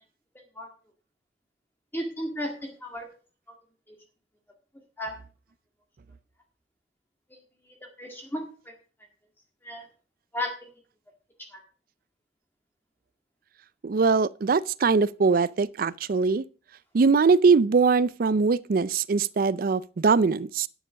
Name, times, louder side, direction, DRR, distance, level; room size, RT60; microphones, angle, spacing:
voice 1, 1.9-2.5 2.8-3.1 5.0-5.1 8.0-8.4 9.6-9.9 10.3-10.5 11.5-11.6, left 1 dB, 10° left, 1.8 m, -32 dB
voice 2, 13.8-16.4 16.9-20.7, right 4 dB, 50° right, 0.4 m, -22 dB
10.0 x 6.9 x 6.3 m
head